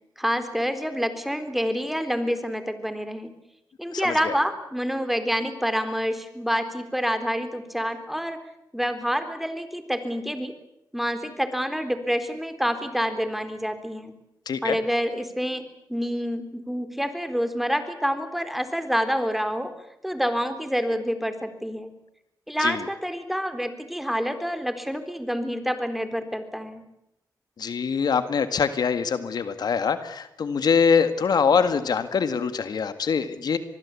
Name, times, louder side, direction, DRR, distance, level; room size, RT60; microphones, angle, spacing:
voice 1, 0.2-3.3 3.8-8.4 8.7-10.6 10.9-14.1 14.6-19.7 20.0-21.9 22.5-26.9, equal, ahead, 9 dB, 3.9 m, -27 dB
voice 2, 3.9-4.4 14.5-14.8 22.6-22.9 27.6-33.6, left 6 dB, 70° left, 10 dB, 1.8 m, -24 dB
25.5 x 20.0 x 8.5 m, 0.83 s
cardioid pair, 65°, 7 cm